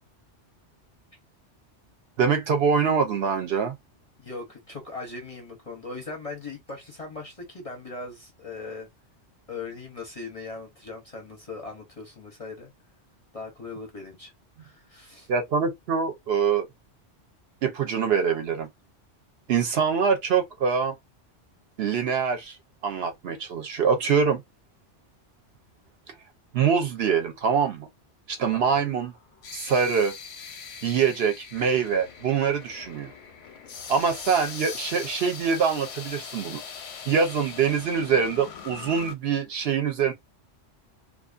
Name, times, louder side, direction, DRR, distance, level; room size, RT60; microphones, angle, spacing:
voice 1, 2.2-3.7 15.3-16.7 17.6-18.7 19.5-20.9 21.8-22.6 22.8-24.4 26.5-27.9 28.3-29.1 29.5-30.1 30.8-33.1 33.9-36.6 37.1-40.1, right 6 dB, 65° right, 0.8 m, -24 dB
voice 2, 4.2-8.9 9.5-12.7 13.3-14.3 14.6-15.3 28.5-28.9, left 3 dB, 40° left, 0.6 m, -39 dB
sound 1, 28.6-39.1, left 6 dB, 85° left, 1.0 m, -41 dB
2.5 x 2.3 x 2.4 m
omnidirectional pair, 1.2 m